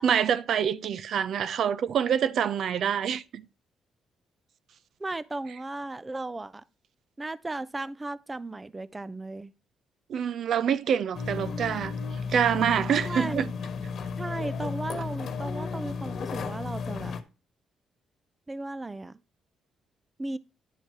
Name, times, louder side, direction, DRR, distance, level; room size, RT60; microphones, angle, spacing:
voice 1, 0.0-3.4 10.1-11.9 12.3-13.5, right 8 dB, 65° right, 0.5 m, -26 dB
voice 2, 5.0-6.6 7.2-9.5 13.0-13.5 14.2-17.2 18.5-19.2 20.2-20.4, right 2 dB, 20° right, 0.5 m, -35 dB
sound 1, 11.1-17.2, left 5 dB, 60° left, 1.2 m, -34 dB
11.0 x 4.6 x 4.5 m
cardioid pair, 90°, 0 cm